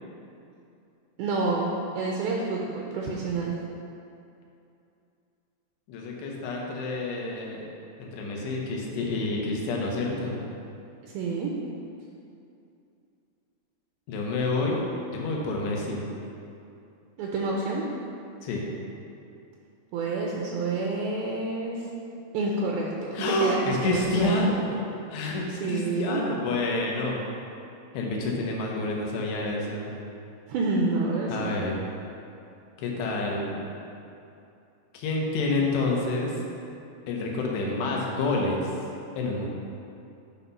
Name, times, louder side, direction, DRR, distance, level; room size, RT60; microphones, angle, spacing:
voice 1, 1.2-1.6 2.0-3.5 11.1-11.5 17.2-17.8 19.9-21.9 22.3-24.6 25.6-26.2 30.5-31.6, right 3 dB, 85° right, -2 dB, 2.1 m, -28 dB
voice 2, 5.9-7.6 8.0-10.4 14.1-14.8 15.1-16.1 18.4-18.7 23.1-24.8 25.1-27.2 27.9-29.9 31.3-31.8 32.8-33.7 34.9-36.4 37.1-38.7 39.2-39.5, left 2 dB, 75° left, -1 dB, 3.1 m, -28 dB
9.0 x 4.3 x 5.4 m, 2.6 s
omnidirectional pair, 5.2 m